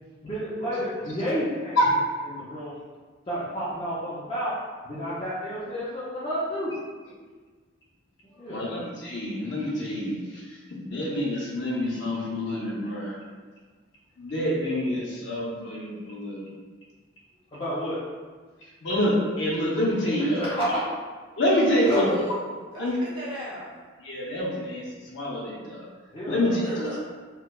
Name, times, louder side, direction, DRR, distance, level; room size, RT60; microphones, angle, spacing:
voice 1, 0.2-1.8 2.3-2.8 3.3-4.5 4.8-6.7 8.4-8.7 17.5-18.0 20.3-20.8 21.8-22.0 26.1-26.6, equal, 25° left, -10 dB, 0.5 m, -30 dB
voice 2, 8.5-10.6 10.8-13.2 14.2-16.5 18.8-20.7 21.4-22.0 22.8-23.0 24.0-24.8 25.1-25.8 26.2-27.0, left 1 dB, 60° left, -5 dB, 0.7 m, -27 dB
voice 3, 21.8-23.7 26.6-27.0, equal, 25° right, -9 dB, 1.0 m, -36 dB
4.5 x 2.2 x 2.2 m, 1.4 s
head